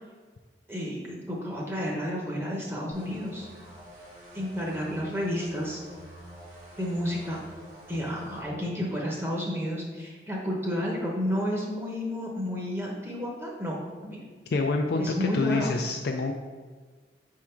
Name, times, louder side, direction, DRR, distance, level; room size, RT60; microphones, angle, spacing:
voice 1, 0.7-3.5 4.3-5.8 6.8-7.4 7.9-13.8 14.0-14.2 15.0-15.7, equal, 15° right, -3 dB, 0.9 m, -31 dB
sound 1, 2.9-8.4, equal, 45° right, 1.8 m, -47 dB
voice 2, 14.5-16.3, left 3 dB, 60° left, 2 dB, 0.4 m, -27 dB
5.9 x 3.7 x 4.5 m, 1.5 s
head